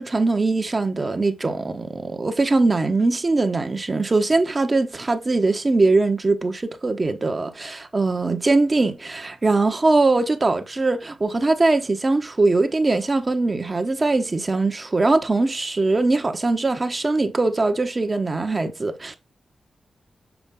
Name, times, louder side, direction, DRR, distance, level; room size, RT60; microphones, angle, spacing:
voice 1, 0.0-19.1, right 3 dB, 30° right, 1.0 m, -21 dB
7.0 x 5.0 x 3.6 m
wide cardioid pair, 130°, 0 cm